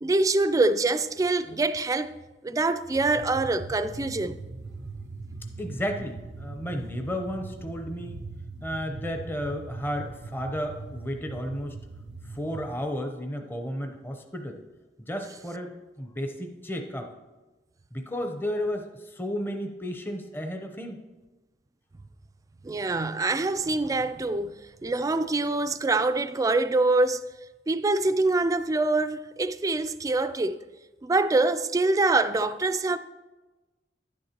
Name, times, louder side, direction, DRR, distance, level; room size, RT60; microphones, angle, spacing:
voice 1, 0.0-2.1 2.4-4.4 22.6-24.5 24.8-27.2 27.7-30.6 31.0-33.0, right 2 dB, 20° right, 0.3 m, -25 dB
sound 1, 2.9-12.8, right 3 dB, 80° right, 0.6 m, -41 dB
voice 2, 5.6-8.2 8.6-11.8 12.3-14.6 15.1-17.1 17.9-21.0, equal, 10° left, 0.6 m, -33 dB
11.0 x 9.5 x 2.9 m
head